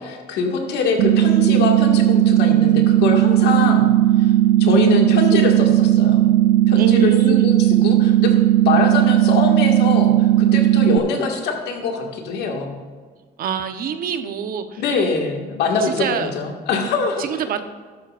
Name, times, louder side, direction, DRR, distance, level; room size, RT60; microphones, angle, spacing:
voice 1, 0.0-3.9 4.2-4.3 4.6-6.3 6.7-8.3 8.7-12.8 14.8-17.2, left 4 dB, 80° left, 2 dB, 2.0 m, -23 dB
sound 1, 1.0-11.0, right 13 dB, 85° right, 0.5 m, -16 dB
voice 2, 6.8-7.5 13.4-14.8 15.8-16.3 17.2-17.6, right 7 dB, 60° right, 8 dB, 0.9 m, -25 dB
13.5 x 11.5 x 2.5 m, 1.5 s
cardioid pair, 110°, 17 cm